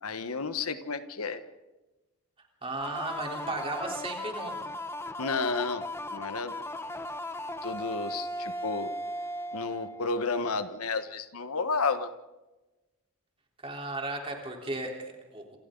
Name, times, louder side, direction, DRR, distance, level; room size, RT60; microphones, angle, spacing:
voice 1, 0.0-1.4 5.2-5.8 6.1-6.5 7.6-8.9 9.5-12.1, left 4 dB, 90° left, 10 dB, 1.3 m, -31 dB
voice 2, 2.6-4.6 13.6-15.6, right 2 dB, 25° right, 1 dB, 3.9 m, -35 dB
sound 1, 2.8-10.4, left 1 dB, 10° left, 0.8 m, -37 dB
28.0 x 27.5 x 4.0 m, 1.1 s
head